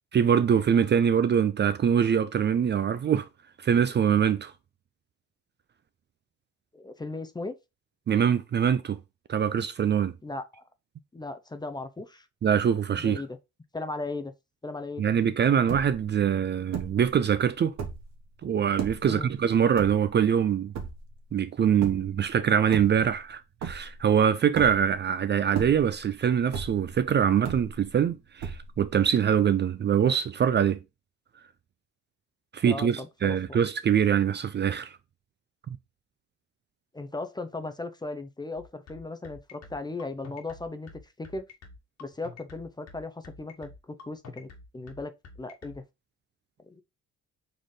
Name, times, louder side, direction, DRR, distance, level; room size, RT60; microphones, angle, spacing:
voice 1, 0.1-3.3 3.6-4.5 8.1-9.0 9.3-10.1 12.4-13.2 15.0-17.7 18.4-20.7 21.3-30.8 32.5-35.0 35.7-35.8, right 8 dB, 35° right, 0.4 m, -24 dB
voice 2, 6.7-7.5 10.2-10.6 11.1-12.3 13.0-13.4 13.7-14.3 14.6-15.2 19.0-19.3 32.6-33.6 36.9-40.9 41.2-41.5 42.0-45.1 45.4-45.8 46.6-46.8, left 2 dB, 15° left, 0.5 m, -37 dB
sound 1, 15.2-15.3 15.5-16.1 16.7-17.1 17.6-18.2 18.8-19.2 19.8-20.3 20.7-21.2 21.8-22.2 22.6-23.3 23.6-24.1 24.5-25.1 25.5-26.1 26.5-27.0 27.4-28.0 28.4-28.9, right 6 dB, 60° right, 1.1 m, -36 dB
sound 2, 38.6-45.8, left 4 dB, 60° left, 1.4 m, -47 dB
4.3 x 3.2 x 3.7 m
cardioid pair, 90°, 30 cm